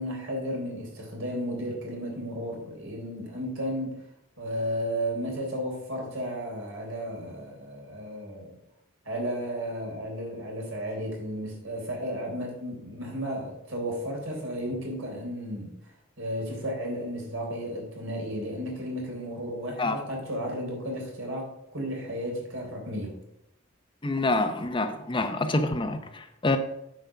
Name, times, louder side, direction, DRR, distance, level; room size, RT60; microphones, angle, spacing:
voice 1, 0.0-4.0 4.4-8.6 9.1-15.7 16.2-23.2, equal, 65° right, 0 dB, 3.7 m, -33 dB
voice 2, 24.0-26.6, left 2 dB, 25° left, 7 dB, 0.7 m, -27 dB
9.2 x 5.3 x 6.9 m, 0.81 s
head